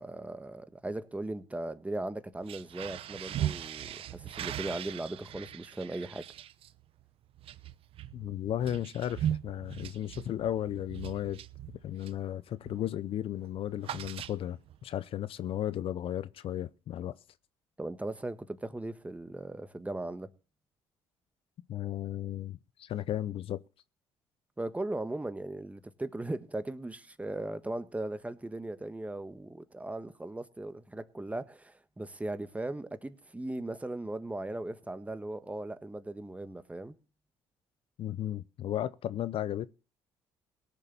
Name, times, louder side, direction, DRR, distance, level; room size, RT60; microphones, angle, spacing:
voice 1, 0.0-6.2 17.8-20.3 24.6-37.0, right 2 dB, 15° right, 1.5 m, -38 dB
sound 1, 2.3-12.3 12.6-12.9 13.2-14.8, right 11 dB, 65° right, 0.8 m, -39 dB
voice 2, 8.1-11.4 11.8-17.2 21.7-23.6 38.0-39.7, left 11 dB, 60° left, 0.7 m, -35 dB
18.0 x 6.9 x 7.0 m
supercardioid pair, 70°, 10 cm